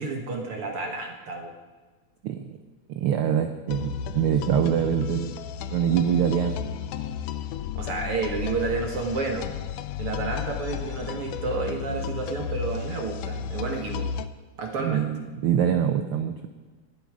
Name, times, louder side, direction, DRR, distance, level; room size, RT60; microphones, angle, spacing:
voice 1, 0.0-1.5 7.8-9.5 10.0-14.1 14.6-15.0, right 3 dB, 55° right, 3 dB, 2.1 m, -30 dB
voice 2, 2.2-2.6 2.9-5.4 5.7-6.6 14.8-16.5, right 9 dB, 80° right, 7 dB, 1.2 m, -24 dB
sound 1, 3.7-14.3, left 7 dB, 90° left, 2.2 m, -33 dB
18.5 x 11.5 x 4.8 m, 1.4 s
omnidirectional pair, 3.5 m